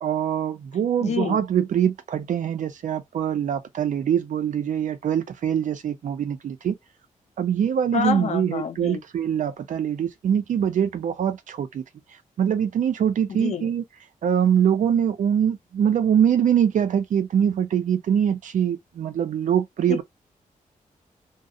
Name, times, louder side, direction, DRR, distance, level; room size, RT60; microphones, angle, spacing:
voice 1, 0.0-6.8 7.4-11.8 12.4-13.8 14.2-20.0, right 8 dB, 70° right, 0.5 m, -23 dB
voice 2, 1.0-1.4 7.9-9.0 13.3-13.7 19.9-20.0, left 7 dB, 55° left, 0.6 m, -28 dB
2.6 x 2.0 x 2.4 m
wide cardioid pair, 170°, 14 cm